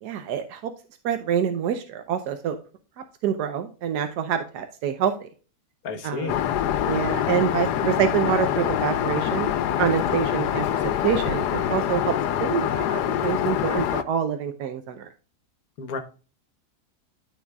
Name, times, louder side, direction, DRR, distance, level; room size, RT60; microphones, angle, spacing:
voice 1, 0.0-0.7 1.0-2.6 3.2-5.3 6.0-6.3 6.8-9.5 9.8-12.1 12.4-15.1, right 8 dB, 90° right, 7 dB, 1.3 m, -26 dB
voice 2, 5.8-6.4 15.8-16.0, left 4 dB, 70° left, 9 dB, 1.4 m, -31 dB
Aircraft, 6.3-14.0, left 10 dB, 90° left, 1.2 m, -25 dB
13.0 x 4.4 x 2.3 m, 0.35 s
omnidirectional pair, 1.7 m